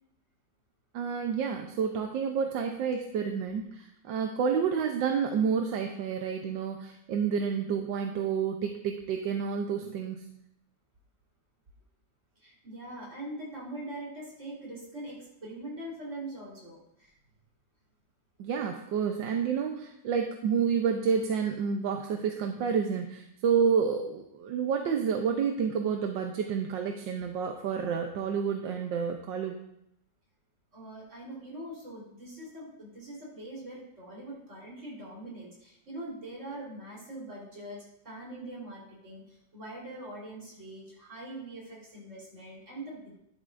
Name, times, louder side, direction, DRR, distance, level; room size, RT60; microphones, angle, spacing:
voice 1, 0.9-10.3 18.4-29.6, right 6 dB, 80° right, 4 dB, 1.5 m, -29 dB
voice 2, 12.4-17.1 30.7-43.2, right 1 dB, 40° right, -4 dB, 4.1 m, -43 dB
12.0 x 11.0 x 2.6 m, 0.79 s
omnidirectional pair, 2.0 m